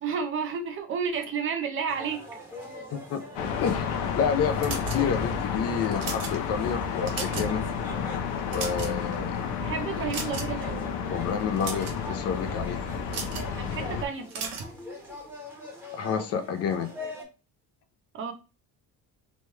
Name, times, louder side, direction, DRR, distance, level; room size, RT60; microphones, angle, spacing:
voice 1, 0.0-2.2 9.6-10.8 13.5-14.5 18.1-18.3, right 6 dB, 35° right, 7 dB, 0.5 m, -31 dB
sound 1, 1.9-17.2, equal, 5° right, 0.8 m, -43 dB
voice 2, 2.9-3.2 3.6-7.6 8.5-9.5 11.1-12.8 15.9-16.9, left 7 dB, 45° left, 8 dB, 0.4 m, -29 dB
sound 2, 3.4-14.1, left 6 dB, 90° left, 0.7 m, -31 dB
sound 3, 4.6-5.3 5.8-6.4 6.9-7.6 7.9-8.0 8.4-9.1 10.1-10.6 11.4-12.0 13.1-13.5 14.3-14.7, right 5 dB, 65° right, 1.0 m, -35 dB
3.0 x 2.2 x 3.0 m, 0.29 s
cardioid pair, 160°, 36 cm